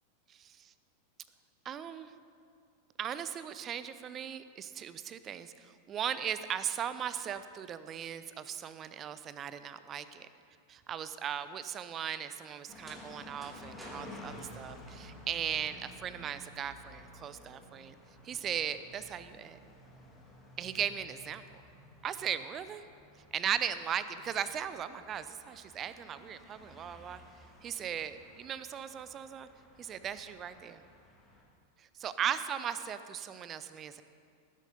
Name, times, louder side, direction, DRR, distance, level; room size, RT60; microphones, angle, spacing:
voice 1, 0.3-0.7 1.6-2.1 3.0-10.3 10.7-18.0 18.2-19.6 20.6-21.6 22.0-22.8 23.3-27.2 27.6-29.5 29.8-30.8 31.8-34.0, right 9 dB, 30° right, 13 dB, 0.7 m, -38 dB
sound 1, 12.7-31.4, left 1 dB, 5° left, 2.9 m, -53 dB
sound 2, 12.9-15.6, right 1 dB, 10° right, 2.8 m, -53 dB
19.0 x 10.5 x 5.3 m, 2.3 s
figure-of-eight pair, 90°, 0 cm